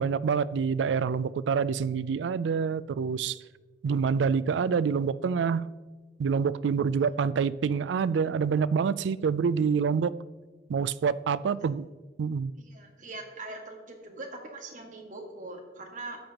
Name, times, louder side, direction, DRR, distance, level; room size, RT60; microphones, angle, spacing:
voice 1, 0.0-3.4 3.8-5.7 6.2-10.1 10.7-11.9 12.2-12.5, right 6 dB, 90° right, 0.3 m, -27 dB
voice 2, 12.6-16.2, right 2 dB, 45° right, 1.6 m, -42 dB
13.0 x 8.9 x 2.9 m
head